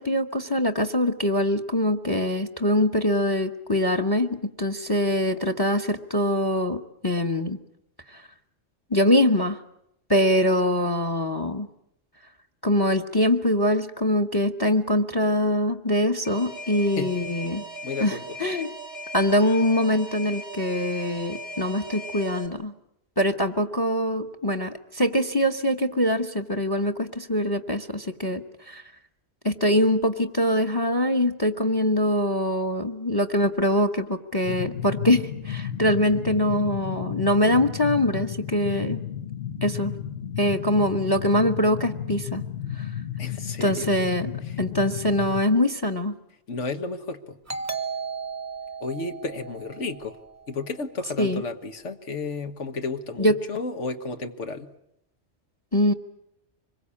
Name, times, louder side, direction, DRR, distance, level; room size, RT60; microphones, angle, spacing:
voice 1, 0.0-7.6 8.1-8.2 8.9-9.6 10.1-11.7 12.6-17.6 18.0-18.7 19.1-22.7 23.2-28.8 29.4-39.0 39.6-39.9 40.4-42.4 42.7-42.9 43.6-44.3 44.6-46.1 51.2-51.4 53.2-53.4 55.7-55.9, left 1 dB, 20° left, 9 dB, 1.1 m, -23 dB
Alarm, 16.2-22.5, right 1 dB, 45° left, 4.3 m, -38 dB
voice 2, 17.8-18.3 43.2-43.9 44.4-44.6 46.5-47.4 48.8-50.2 50.5-54.7, left 3 dB, 80° left, 7 dB, 1.7 m, -32 dB
sound 1, 34.4-45.4, left 9 dB, 65° left, 1.6 m, -33 dB
Doorbell, 47.5-50.8, right 5 dB, 15° right, 0.8 m, -35 dB
25.0 x 22.0 x 8.5 m, 0.77 s
omnidirectional pair, 1.2 m